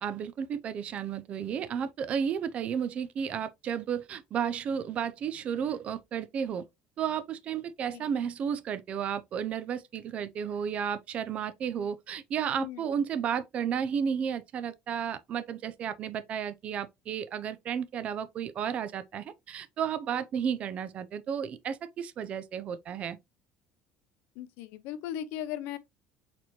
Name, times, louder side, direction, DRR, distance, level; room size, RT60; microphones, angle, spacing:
voice 1, 0.0-6.7 7.0-23.2, right 8 dB, 35° right, 0.5 m, -33 dB
voice 2, 24.4-25.8, left 11 dB, 75° left, 0.6 m, -37 dB
4.3 x 4.2 x 2.9 m
cardioid pair, 160°, 4 cm